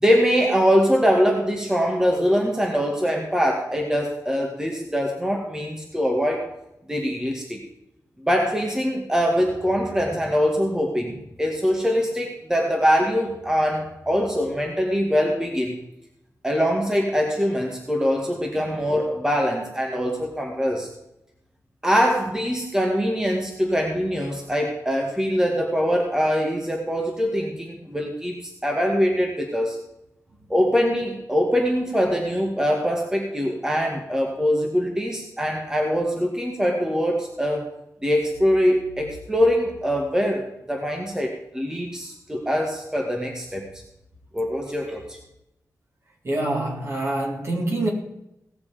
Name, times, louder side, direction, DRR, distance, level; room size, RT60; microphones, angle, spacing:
voice 1, 0.0-6.5 6.9-7.6 8.2-15.8 16.4-20.9 21.8-29.8 30.5-37.7 38.0-43.7 44.3-45.2, equal, 10° right, 2.1 m, -23 dB
voice 2, 46.2-47.9, right 1 dB, 45° right, 3.7 m, -25 dB
18.0 x 7.0 x 5.1 m
wide cardioid pair, 95°, 6 cm